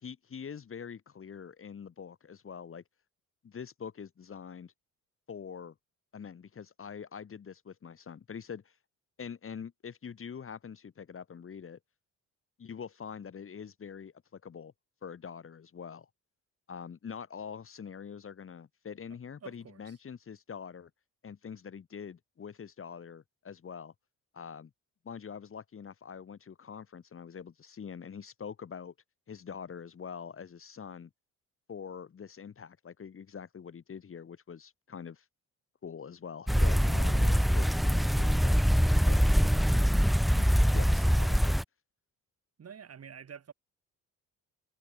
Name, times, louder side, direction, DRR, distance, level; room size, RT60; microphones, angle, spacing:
voice 1, 0.0-2.8 3.4-4.7 5.3-5.7 6.1-8.7 9.2-11.8 12.6-14.7 15.0-16.1 16.7-20.9 21.2-23.9 24.3-24.7 25.0-28.9 29.3-31.1 31.7-35.2 35.8-38.6 39.1-39.3 40.3-41.6, left 7 dB, 40° left, 1.9 m, -44 dB
voice 2, 19.1-19.9 42.6-43.5, right 7 dB, 50° right, 4.9 m, -48 dB
sound 1, 36.5-41.6, equal, ahead, 0.3 m, -24 dB
cardioid pair, 80°, 33 cm